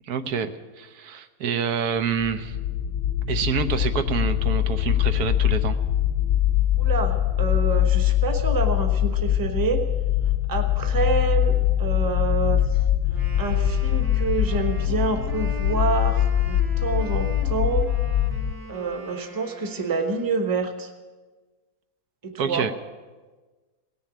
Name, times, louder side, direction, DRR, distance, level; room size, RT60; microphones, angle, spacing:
voice 1, 0.1-2.6 3.3-5.8 22.4-22.7, right 6 dB, 85° right, 9 dB, 1.4 m, -27 dB
sound 1, 2.2-18.5, left 11 dB, 85° left, 1.2 m, -23 dB
voice 2, 6.8-9.8 10.5-12.6 13.4-17.9 18.7-20.9 22.2-22.7, right 4 dB, 15° right, 5 dB, 1.0 m, -27 dB
Wind instrument woodwind instrument, 13.1-20.8, right 1 dB, 50° right, 2.2 m, -41 dB
17.5 x 7.1 x 9.9 m, 1.3 s
omnidirectional pair, 1.6 m